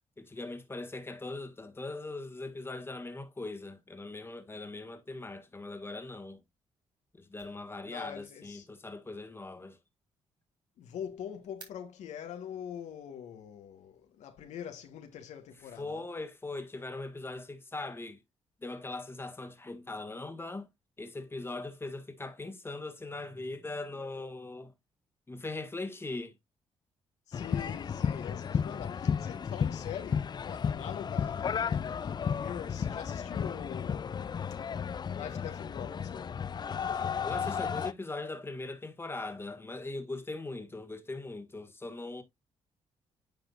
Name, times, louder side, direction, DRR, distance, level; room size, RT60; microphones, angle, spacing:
voice 1, 0.2-6.4 7.2-9.8 15.7-18.2 18.6-20.7 21.0-24.7 25.3-26.3 36.8-42.2, left 2 dB, 20° left, 1.5 m, -40 dB
sound 1, 6.7-12.5, right 3 dB, 40° right, 4.5 m, -62 dB
voice 2, 7.8-8.7 10.8-16.0 27.3-34.3 35.1-36.3, left 9 dB, 80° left, 1.2 m, -43 dB
sound 2, 27.3-37.9, left 7 dB, 35° left, 0.4 m, -33 dB
9.4 x 5.0 x 2.4 m
cardioid pair, 70°, 12 cm